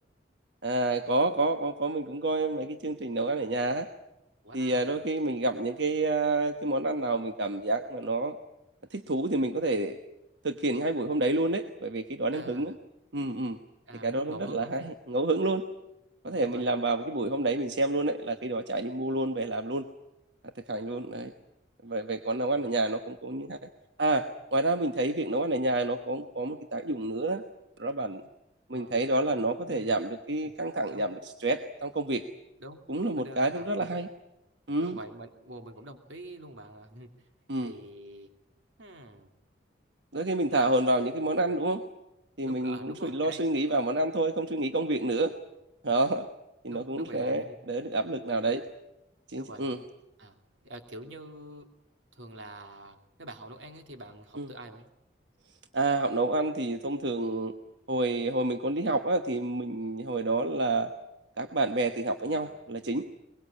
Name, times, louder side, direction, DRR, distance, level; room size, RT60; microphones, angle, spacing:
voice 1, 0.6-3.9 4.5-8.3 8.9-10.0 10.4-12.7 13.1-13.6 14.0-15.6 16.2-19.9 20.7-21.3 21.8-23.7 24.0-27.4 27.8-28.2 28.7-32.3 32.9-34.1 34.7-35.0 37.5-37.7 40.1-41.8 42.4-45.3 45.8-46.3 46.6-48.6 49.3-49.8 54.4-54.5 55.7-57.5 57.9-60.9 61.4-63.0, right 2 dB, 65° right, 7 dB, 1.2 m, -29 dB
voice 2, 4.4-4.9 12.3-12.8 13.9-14.8 16.2-16.7 22.5-22.8 28.7-29.0 29.6-30.0 30.3-30.5 30.9-31.1 32.6-32.9 33.2-34.0 34.8-37.3 37.6-38.3 38.8-39.3 40.5-41.3 42.4-43.5 46.7-47.6 48.3-48.6 49.3-49.7 50.2-50.4 50.6-51.7 52.1-54.9 62.2-62.7, right 1 dB, 85° right, 5 dB, 2.7 m, -46 dB
23.0 x 22.0 x 8.5 m, 0.90 s
head